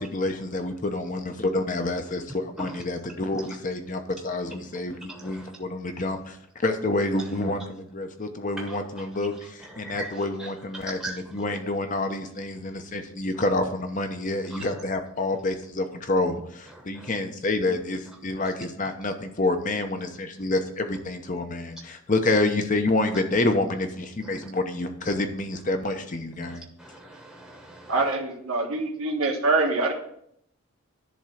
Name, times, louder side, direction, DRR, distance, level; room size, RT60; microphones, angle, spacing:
voice 1, 0.0-6.4 6.6-26.6, left 2 dB, 40° left, 6 dB, 0.8 m, -28 dB
voice 2, 5.1-5.5 8.7-8.8 9.7-10.1 10.4-10.5 10.8-11.2 17.0-17.1 24.3-24.4 26.4-27.9, right 1 dB, ahead, -1 dB, 1.0 m, -40 dB
voice 3, 27.9-29.9, right 3 dB, 85° right, -1 dB, 1.6 m, -24 dB
10.5 x 3.7 x 5.8 m, 0.70 s
head